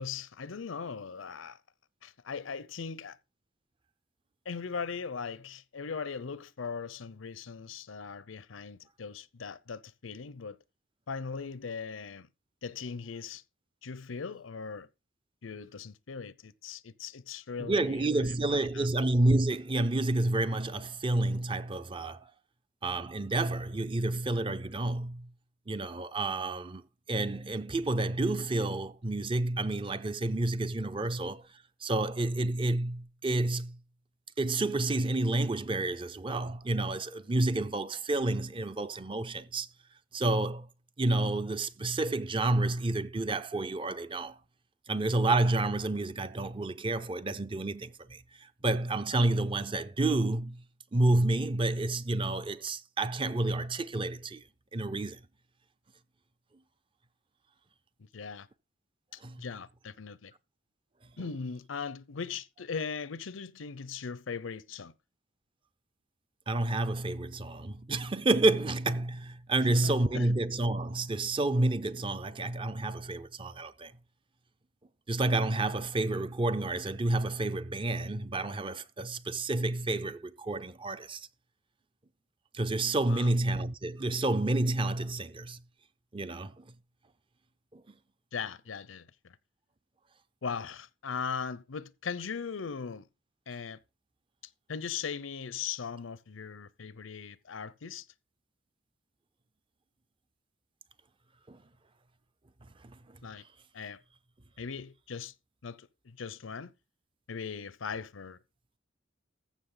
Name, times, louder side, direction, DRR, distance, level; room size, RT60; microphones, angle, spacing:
voice 1, 0.0-1.6 2.0-3.2 4.4-10.6 11.1-12.3 12.6-13.4 13.8-14.9 15.4-18.9 58.1-58.5 59.1-60.3 61.2-64.9 69.5-70.3 83.0-83.3 88.3-89.4 90.4-93.1 93.5-93.8 94.7-98.1 103.2-103.4 103.7-104.0 104.6-105.3 105.6-106.7 107.3-108.4, left 5 dB, 90° left, 0.6 m, -39 dB
voice 2, 17.6-22.3 22.8-25.3 25.7-26.8 27.1-31.5 31.8-33.8 34.4-39.7 40.1-40.7 41.0-44.4 44.9-50.6 50.9-54.4 54.7-55.2 59.2-59.4 66.5-73.9 75.1-81.3 82.5-85.6 86.1-86.7 87.7-87.8 101.5-101.6 102.8-103.0, right 2 dB, 25° right, 0.6 m, -29 dB
14.5 x 6.3 x 3.9 m
head